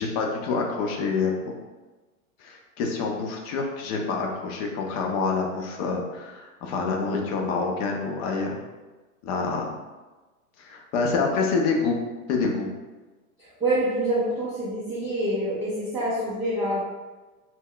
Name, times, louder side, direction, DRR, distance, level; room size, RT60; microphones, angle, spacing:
voice 1, 0.0-1.3 2.4-8.6 9.2-9.7 10.6-12.0 12.3-12.7, left 4 dB, 45° left, 1 dB, 0.6 m, -27 dB
voice 2, 13.4-16.8, right 1 dB, 10° right, -13 dB, 0.3 m, -26 dB
2.1 x 2.0 x 3.8 m, 1.2 s
hypercardioid pair, 120°, 44 cm